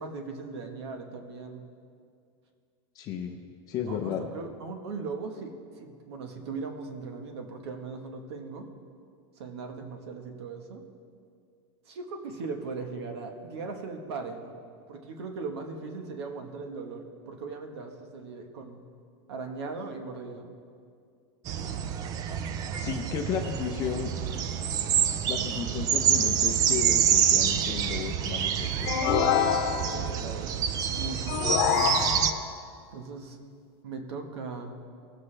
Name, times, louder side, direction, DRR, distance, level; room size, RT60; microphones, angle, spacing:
voice 1, 0.0-1.6 3.9-8.7 9.3-10.8 11.8-14.5 14.9-18.8 19.3-20.5 23.2-23.5 29.9-30.5 30.8-32.0 32.9-33.4 33.8-34.8, right 4 dB, 85° right, 4 dB, 1.3 m, -39 dB
voice 2, 2.9-3.4 3.7-4.2 22.8-24.1 25.3-28.9, left 8 dB, 25° left, 2 dB, 0.6 m, -33 dB
sound 1, 21.5-32.3, right 8 dB, 25° right, 0.4 m, -27 dB
sound 2, 28.8-30.2 31.3-32.6, left 8 dB, 55° left, 0.9 m, -26 dB
19.0 x 7.9 x 3.3 m, 2.3 s
supercardioid pair, 165°, 14 cm